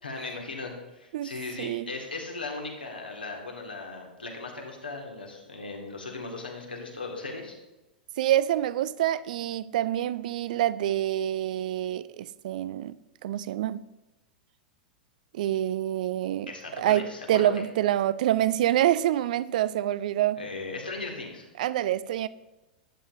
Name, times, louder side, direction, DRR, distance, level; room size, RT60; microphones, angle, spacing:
voice 1, 0.0-7.5 16.5-17.5 20.4-21.4, left 3 dB, 80° left, 1.7 m, -37 dB
voice 2, 1.6-1.9 8.2-13.0 13.2-13.8 15.3-16.5 16.8-20.4 21.6-22.3, right 12 dB, 55° right, 0.4 m, -26 dB
11.0 x 8.5 x 2.6 m
figure-of-eight pair, 95°, 5 cm